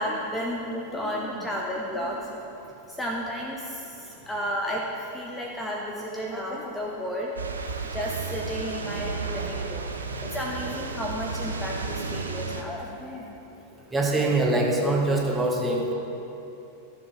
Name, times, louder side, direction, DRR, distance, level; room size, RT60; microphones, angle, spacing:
voice 1, 0.0-2.4 2.9-4.9 5.1-7.3 7.9-9.9 10.2-13.4, equal, 10° left, -2 dB, 0.9 m, -32 dB
sound 1, 7.4-12.6, right 4 dB, 75° right, 0.7 m, -33 dB
voice 2, 13.9-15.9, right 2 dB, 10° right, -1 dB, 1.5 m, -24 dB
13.5 x 7.1 x 3.4 m, 2.9 s
figure-of-eight pair, 90°, 0 cm